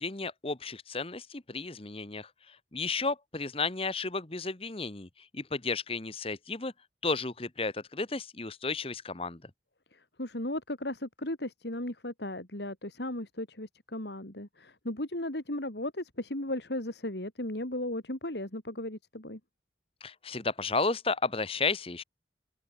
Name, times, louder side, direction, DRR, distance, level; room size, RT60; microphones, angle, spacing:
voice 1, 0.0-5.1 5.3-6.7 7.0-9.5 20.0-22.0, left 3 dB, 30° left, 1.3 m, -33 dB
voice 2, 9.9-19.4, left 1 dB, 65° left, 3.4 m, -36 dB
head